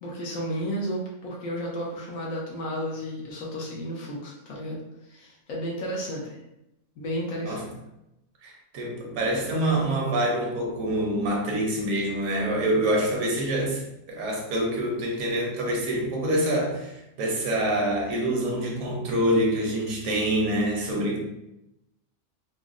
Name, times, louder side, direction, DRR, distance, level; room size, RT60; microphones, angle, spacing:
voice 1, 0.0-4.8 5.0-6.4 7.0-7.6, equal, 75° left, -3 dB, 1.1 m, -32 dB
voice 2, 8.4-21.2, right 1 dB, 75° right, -1 dB, 1.1 m, -26 dB
3.8 x 2.0 x 2.4 m, 0.87 s
omnidirectional pair, 1.5 m